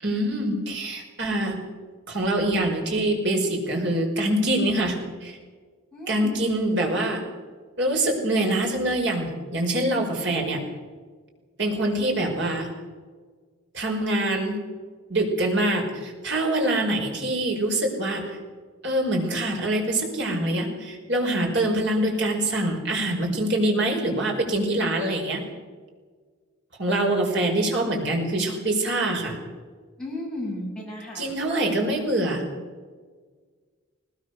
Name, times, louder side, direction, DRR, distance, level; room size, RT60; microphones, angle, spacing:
voice 1, 0.0-1.6 2.1-5.4 6.1-7.2 7.8-10.6 11.6-12.7 13.7-14.6 15.1-18.4 18.8-25.5 26.8-29.4 31.2-32.4, right 1 dB, 60° right, 1 dB, 5.2 m, -24 dB
voice 2, 5.9-6.3 30.0-31.3 31.7-31.8, left 1 dB, 5° left, -4 dB, 7.5 m, -34 dB
20.0 x 20.0 x 6.7 m, 1.5 s
head